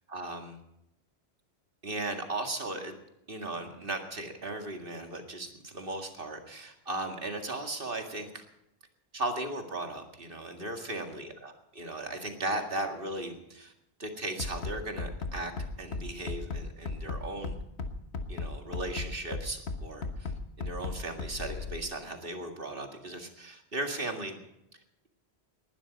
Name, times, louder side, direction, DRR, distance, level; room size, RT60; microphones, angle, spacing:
voice 1, 0.1-0.6 1.8-2.9 3.3-8.4 9.1-13.7 14.0-15.5 15.8-17.6 18.3-24.4, right 2 dB, 55° right, 4 dB, 2.2 m, -37 dB
Bass drum, 14.4-21.8, left 4 dB, 85° left, 1.5 m, -35 dB
19.5 x 12.0 x 5.3 m, 0.83 s
omnidirectional pair, 1.1 m